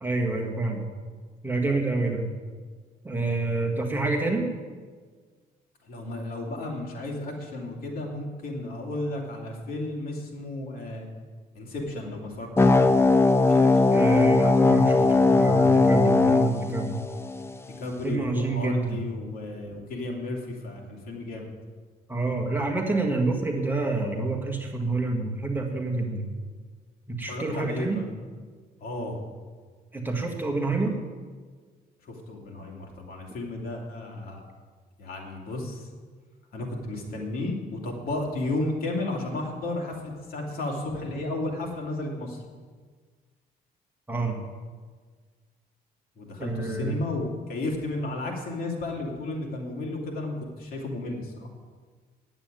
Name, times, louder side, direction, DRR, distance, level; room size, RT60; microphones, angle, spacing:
voice 1, 0.0-0.9 1.4-2.3 3.0-4.5 13.9-17.0 18.0-19.0 22.1-26.3 27.1-28.0 29.9-31.0 44.1-44.4 46.4-47.0, right 3 dB, 10° right, 0 dB, 1.7 m, -27 dB
voice 2, 5.8-11.1 11.5-12.9 13.4-14.0 17.8-21.5 26.0-26.1 27.3-28.1 28.8-29.2 32.0-34.4 35.0-35.9 36.5-42.4 46.2-51.5, left 2 dB, 65° left, 0 dB, 2.7 m, -33 dB
sound 1, 12.6-17.6, left 3 dB, 15° left, 0.6 m, -19 dB
9.7 x 8.1 x 9.0 m, 1.5 s
cardioid pair, 130°, 16 cm